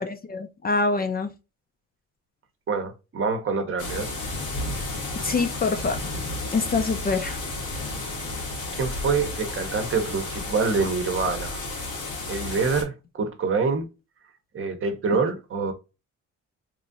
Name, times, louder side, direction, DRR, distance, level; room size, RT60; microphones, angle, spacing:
voice 1, 0.0-1.3 5.2-6.0 6.5-7.4, left 3 dB, 30° left, 0.5 m, -25 dB
voice 2, 2.7-4.1 8.7-11.6 12.3-13.9 14.5-15.7, right 4 dB, 45° right, 0.8 m, -26 dB
sound 1, 3.8-12.8, left 2 dB, 90° left, 1.3 m, -32 dB
3.1 x 2.5 x 2.5 m
cardioid pair, 90°, 30 cm